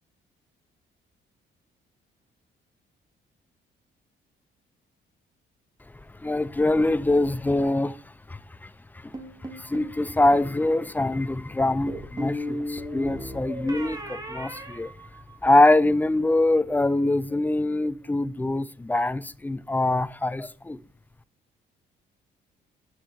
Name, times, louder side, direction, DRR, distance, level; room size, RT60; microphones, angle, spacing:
voice 1, 6.2-8.0 8.3-8.7 9.5-14.9 15.4-20.8, left 2 dB, 10° left, 0.3 m, -23 dB
sound 1, 9.1-10.0 11.9-15.6, equal, 20° right, 1.5 m, -35 dB
6.3 x 6.1 x 4.4 m
cardioid pair, 90°, 20 cm